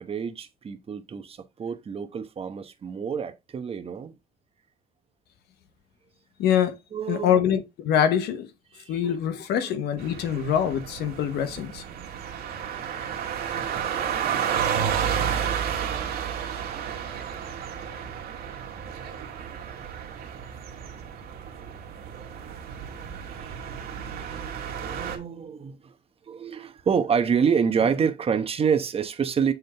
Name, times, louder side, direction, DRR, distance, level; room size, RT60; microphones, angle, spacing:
voice 1, 0.0-4.1 6.9-7.5 8.7-9.1 9.6-9.7 23.3-23.6 23.9-24.5 24.8-25.9 26.3-29.5, right 6 dB, 35° right, 1.1 m, -27 dB
voice 2, 6.4-6.7 7.1-8.5 8.9-11.8, left 9 dB, 75° left, 1.2 m, -24 dB
sound 1, 10.0-25.2, right 8 dB, 65° right, 1.8 m, -31 dB
8.0 x 3.7 x 3.4 m
cardioid pair, 110°, 17 cm